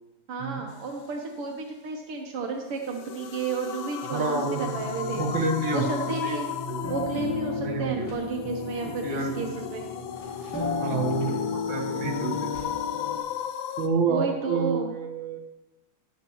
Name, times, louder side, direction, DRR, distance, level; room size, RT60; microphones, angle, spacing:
voice 1, 0.3-5.2 5.7-6.5 6.9-9.8 14.1-14.9, right 4 dB, 85° right, 2 dB, 2.0 m, -32 dB
sound 1, 2.8-13.9, left 9 dB, 70° left, 1.4 m, -36 dB
voice 2, 4.1-4.8 5.1-6.4 6.7-6.8 7.6-8.1 9.0-9.5 9.9-10.0 10.8-12.5 13.8-15.4, right 4 dB, 60° right, 1 dB, 2.2 m, -29 dB
sound 2, 4.6-13.2, left 4 dB, 10° left, 0.9 m, -34 dB
Door, 7.9-8.5 9.6-11.3 12.5-13.0, left 2 dB, 50° left, 2.6 m, -49 dB
15.0 x 10.5 x 3.0 m, 1.0 s
omnidirectional pair, 2.4 m